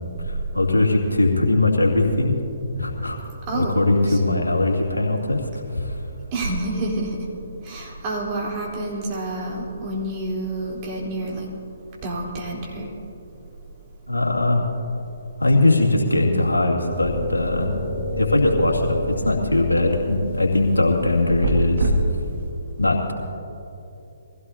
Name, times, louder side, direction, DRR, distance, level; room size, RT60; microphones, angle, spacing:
voice 1, 0.2-2.3 2.8-3.2 3.5-6.0 14.1-14.7 15.4-21.9 22.8-23.1, left 2 dB, 85° left, -1 dB, 2.4 m, -20 dB
voice 2, 6.3-7.2 7.6-11.4 12.0-12.9, right 2 dB, 30° right, -3 dB, 3.8 m, -28 dB
sound 1, 16.9-22.5, right 1 dB, 55° right, 2.0 m, -28 dB
22.5 x 16.5 x 2.8 m, 2.9 s
figure-of-eight pair, 135°, 0 cm